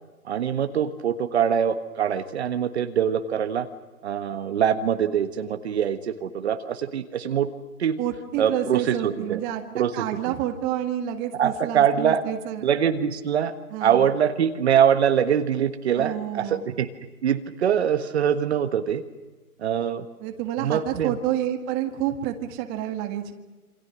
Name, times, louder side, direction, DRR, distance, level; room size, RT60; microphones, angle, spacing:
voice 1, 0.2-3.7 4.0-7.5 7.8-8.0 8.4-9.4 9.7-10.3 11.4-12.2 12.6-13.5 13.8-16.9 17.2-19.0 19.6-20.0 20.6-21.1, right 8 dB, 45° right, 8 dB, 1.5 m, -23 dB
voice 2, 8.0-12.6 13.7-14.1 15.9-16.7 20.2-23.3, right 11 dB, 20° right, 6 dB, 1.7 m, -29 dB
27.5 x 26.5 x 6.2 m, 1.2 s
hypercardioid pair, 145°, 44 cm